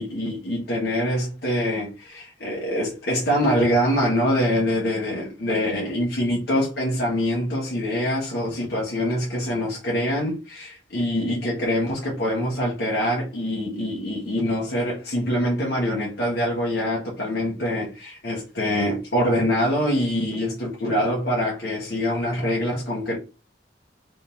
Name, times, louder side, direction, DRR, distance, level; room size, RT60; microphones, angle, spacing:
voice 1, 0.0-23.2, equal, 60° left, 1.2 m, -24 dB
3.6 x 3.3 x 2.8 m
head